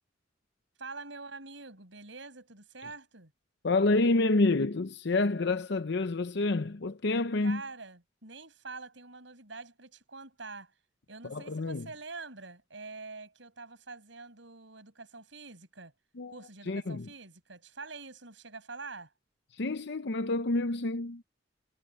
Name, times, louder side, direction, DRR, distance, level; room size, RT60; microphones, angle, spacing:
voice 1, 0.8-3.3 7.4-10.7 11.1-15.9 16.3-19.1, right 3 dB, 75° right, 7.0 m, -45 dB
voice 2, 3.6-7.6 11.3-11.9 16.2-16.3 16.7-17.1 19.5-21.2, left 2 dB, 65° left, 0.7 m, -28 dB
head